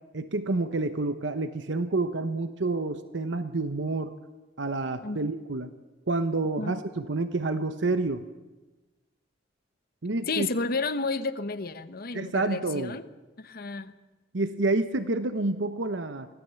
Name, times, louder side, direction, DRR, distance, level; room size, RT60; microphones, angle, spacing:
voice 1, 0.1-4.1 4.6-5.7 6.1-8.2 10.0-10.5 12.1-12.9 14.3-16.3, right 2 dB, 70° right, 10 dB, 0.9 m, -28 dB
voice 2, 10.3-13.0 13.4-13.9, left 3 dB, 55° left, 11 dB, 1.0 m, -31 dB
24.0 x 16.0 x 7.0 m, 1.2 s
head